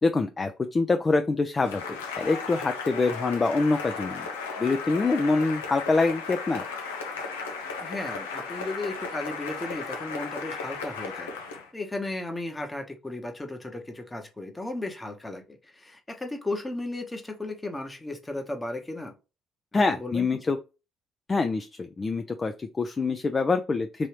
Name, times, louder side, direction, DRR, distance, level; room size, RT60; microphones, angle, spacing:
voice 1, 0.0-4.3 4.6-6.6 19.7-20.6 21.3-24.1, left 3 dB, 35° left, 0.4 m, -25 dB
Cheering / Applause, 1.6-11.7, left 5 dB, 90° left, 0.5 m, -35 dB
voice 2, 7.8-19.1 19.7-20.3, left 2 dB, 15° left, 1.0 m, -35 dB
3.1 x 2.7 x 3.0 m
hypercardioid pair, 55°, 0 cm